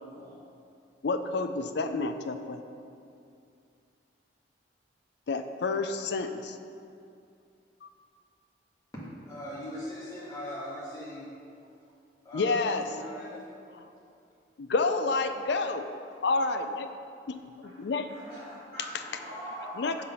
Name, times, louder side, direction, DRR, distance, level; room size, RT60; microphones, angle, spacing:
voice 1, 1.0-2.6 5.3-6.6 7.8-7.9 12.3-12.9 14.6-15.9 16.2-16.9 17.3-18.1 19.8-20.0, left 3 dB, 65° left, 8 dB, 0.4 m, -29 dB
voice 2, 8.9-11.2 12.2-13.5 13.9-14.0, equal, 20° left, -7 dB, 1.7 m, -40 dB
voice 3, 18.1-20.0, equal, 55° right, -12 dB, 2.1 m, -43 dB
6.6 x 5.7 x 5.6 m, 2.5 s
head